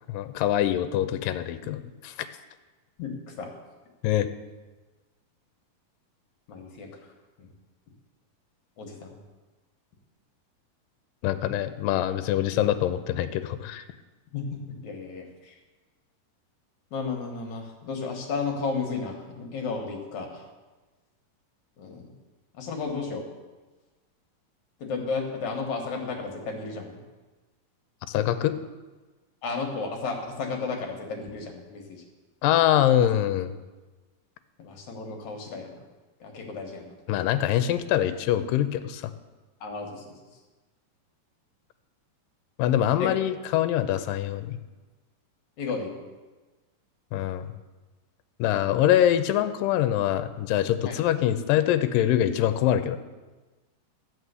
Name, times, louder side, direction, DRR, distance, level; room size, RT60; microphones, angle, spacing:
voice 1, 0.1-2.1 4.0-4.3 11.2-13.8 28.1-28.6 32.4-33.5 37.1-39.0 42.6-44.6 47.1-47.5 48.4-53.0, left 11 dB, 80° left, 11 dB, 2.3 m, -24 dB
voice 2, 3.0-3.5 6.5-7.0 7.4-7.5 8.8-9.2 14.3-15.6 16.9-20.5 21.8-22.1 22.5-23.2 24.8-27.0 29.4-32.0 33.0-33.1 34.6-35.8 36.2-37.0 39.6-40.1 43.0-43.1 45.6-45.9 50.8-51.0, left 4 dB, 60° left, 2 dB, 2.5 m, -33 dB
13.0 x 6.1 x 8.1 m, 1.2 s
omnidirectional pair, 4.1 m